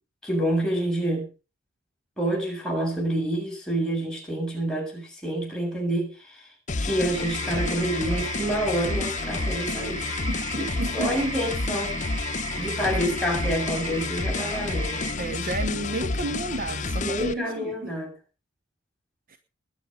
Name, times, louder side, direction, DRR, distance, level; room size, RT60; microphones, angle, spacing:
voice 1, 0.2-1.3 2.2-6.5 6.8-10.0 10.6-12.0 12.6-15.0 17.0-18.1, right 1 dB, 5° left, -2 dB, 7.5 m, -28 dB
sound 1, 6.7-17.3, left 3 dB, 40° left, 1.0 m, -30 dB
sound 2, 7.1-15.1, right 3 dB, 30° right, 2.7 m, -36 dB
voice 2, 10.5-11.2 15.2-17.9 19.3-19.4, right 2 dB, 45° right, 9 dB, 1.1 m, -32 dB
20.5 x 7.8 x 5.4 m, 0.33 s
head